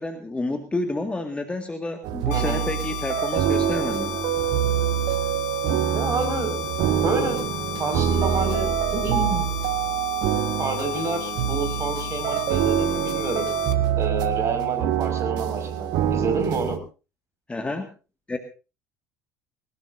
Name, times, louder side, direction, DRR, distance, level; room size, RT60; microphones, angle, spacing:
voice 1, 0.0-4.1 17.5-17.9 18.3-18.4, left 2 dB, 15° left, 6 dB, 2.0 m, -29 dB
sound 1, 2.0-16.8, right 10 dB, 50° right, 1.4 m, -25 dB
sound 2, 2.3-13.7, left 12 dB, 65° left, 1.4 m, -34 dB
voice 2, 2.3-2.7 5.9-6.6 7.0-7.5 7.8-9.5 10.6-13.5 13.9-16.8, right 3 dB, 30° right, 6 dB, 5.8 m, -28 dB
21.0 x 19.5 x 2.7 m, 0.33 s
figure-of-eight pair, 65°, 9 cm